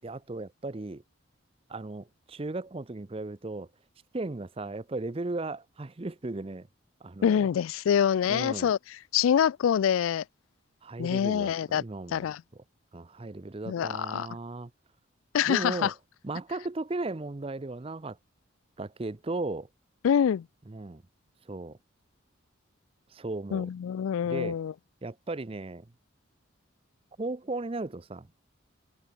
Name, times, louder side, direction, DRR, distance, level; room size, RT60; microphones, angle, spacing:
voice 1, 0.0-1.0 1.7-3.7 4.1-6.7 7.0-7.5 8.3-8.7 10.8-12.3 12.9-14.7 15.5-15.9 16.2-18.2 18.8-19.7 20.7-21.0 21.5-21.8 23.1-23.7 24.2-24.6 25.0-25.9 27.2-28.3, right 2 dB, 30° right, 0.6 m, -36 dB
voice 2, 7.2-8.8 9.1-10.2 11.0-11.8 12.1-12.4 13.7-14.3 15.3-15.9 20.0-20.5 23.5-24.7, left 8 dB, 90° left, 0.3 m, -25 dB
head